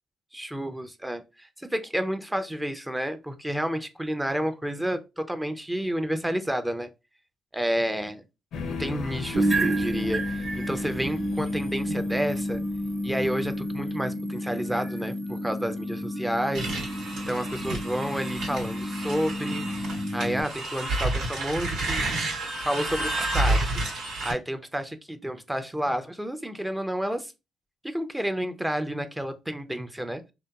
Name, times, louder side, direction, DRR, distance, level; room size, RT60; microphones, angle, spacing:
voice 1, 0.3-6.9 7.5-8.2 8.7-12.6 13.0-17.0 17.3-19.7 20.1-22.3 22.6-23.8 24.2-27.3 27.8-30.2, equal, 10° right, 0.4 m, -30 dB
sound 1, 8.5-14.0, left 4 dB, 75° left, 0.4 m, -39 dB
sound 2, 9.3-20.4, equal, 55° right, 0.8 m, -30 dB
sound 3, 16.5-24.3, right 2 dB, 85° right, 1.0 m, -30 dB
2.7 x 2.2 x 2.2 m
cardioid pair, 90°, 0 cm